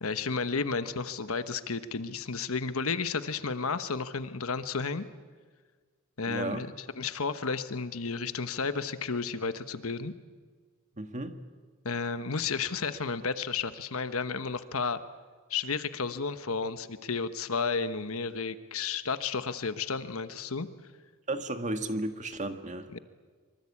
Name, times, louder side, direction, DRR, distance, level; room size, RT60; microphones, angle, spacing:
voice 1, 0.0-5.1 6.2-10.1 11.8-15.0 15.5-20.7 22.9-23.0, left 4 dB, 70° left, 11 dB, 1.2 m, -32 dB
voice 2, 6.3-6.6 11.0-11.4 21.3-22.9, right 2 dB, 35° right, 8 dB, 1.7 m, -34 dB
25.0 x 24.5 x 8.6 m, 1.5 s
head